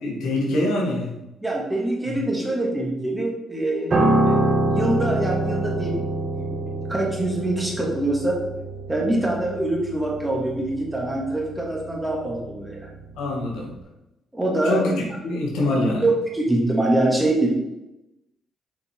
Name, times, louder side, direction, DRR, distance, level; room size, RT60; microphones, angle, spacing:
voice 1, 0.0-1.1 2.1-2.2 13.2-13.7 14.6-14.9 15.2-16.0, left 1 dB, 90° left, -2 dB, 2.4 m, -24 dB
voice 2, 1.4-6.0 6.4-8.4 8.9-12.9 14.3-15.0 16.0-17.5, right 1 dB, 10° right, -2 dB, 2.3 m, -24 dB
Piano, 3.9-13.3 13.6-13.8, right 1 dB, 35° right, 1.9 m, -26 dB
7.1 x 5.2 x 4.7 m, 0.95 s
cardioid pair, 90°, 0 cm